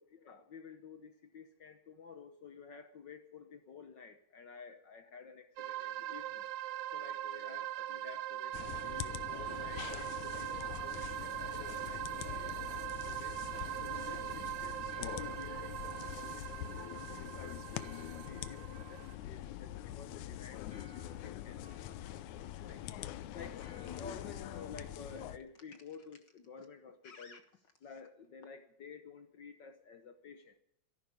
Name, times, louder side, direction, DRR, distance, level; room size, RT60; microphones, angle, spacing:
voice 1, 0.0-6.5 6.9-13.4 13.8-21.6 22.6-22.8 23.3-30.6, left 5 dB, 70° left, 8 dB, 1.0 m, -52 dB
sound 1, 5.6-19.1, right 14 dB, 75° right, 1.5 m, -41 dB
sound 2, 7.3-25.0, equal, 10° left, 5.6 m, -66 dB
sound 3, 8.5-25.4, left 12 dB, 90° left, 2.2 m, -44 dB
14.0 x 11.5 x 8.3 m, 0.72 s
omnidirectional pair, 3.3 m